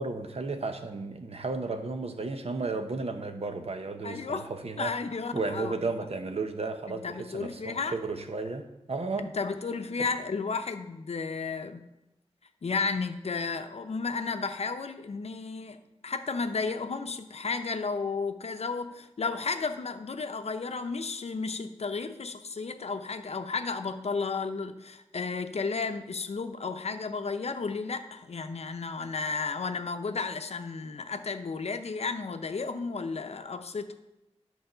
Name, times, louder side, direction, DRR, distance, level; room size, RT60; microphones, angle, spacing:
voice 1, 0.0-4.9 5.3-9.3, right 3 dB, 65° right, 7 dB, 0.9 m, -33 dB
voice 2, 4.0-4.5 4.8-5.9 6.9-7.9 9.2-11.8 12.6-34.0, left 4 dB, 75° left, 8 dB, 0.6 m, -33 dB
10.5 x 4.6 x 6.7 m, 0.96 s
wide cardioid pair, 90°, 11 cm